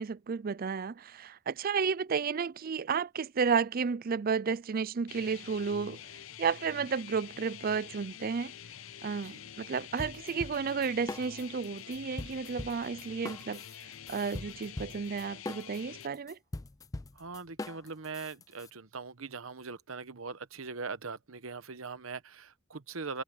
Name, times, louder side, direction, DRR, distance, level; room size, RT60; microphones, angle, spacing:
voice 1, 0.0-6.0 6.4-8.5 9.0-13.6 14.1-16.4, right 5 dB, 45° right, 0.5 m, -32 dB
sound 1, 5.1-16.1, left 9 dB, 80° left, 0.7 m, -47 dB
voice 2, 9.1-9.5 17.1-23.2, right 4 dB, 90° right, 1.1 m, -41 dB
sound 2, 10.0-11.7 11.9-18.7, left 2 dB, 15° left, 0.4 m, -41 dB
head